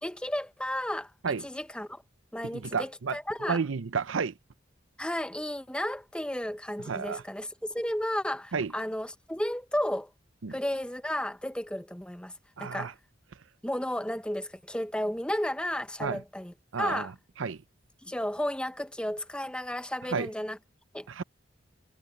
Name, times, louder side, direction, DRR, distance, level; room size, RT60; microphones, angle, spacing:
voice 1, 0.0-2.0 2.3-3.6 5.0-10.1 10.5-12.3 12.6-12.9 13.6-17.1 18.0-20.6 20.9-21.1, left 1 dB, 5° left, 0.9 m, -33 dB
voice 2, 2.5-3.2 3.5-4.3 6.9-7.2 8.5-8.7 10.4-10.5 12.6-12.9 16.0-16.2 16.7-17.1 17.4-17.6 20.1-20.3 21.1-21.2, right 5 dB, 90° right, 0.6 m, -31 dB
head